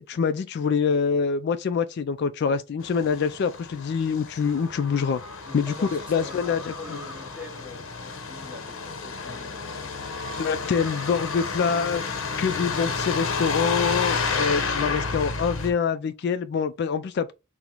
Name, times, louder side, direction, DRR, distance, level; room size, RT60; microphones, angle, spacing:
voice 1, 0.0-5.2 5.5-6.7 10.4-17.3, left 6 dB, 50° left, 0.3 m, -25 dB
Truck, 2.8-15.7, left 5 dB, 65° left, 0.8 m, -31 dB
sound 1, 4.4-12.0, equal, 25° right, 1.4 m, -44 dB
voice 2, 5.4-11.3, left 3 dB, 5° right, 1.0 m, -45 dB
4.4 x 2.1 x 3.7 m
head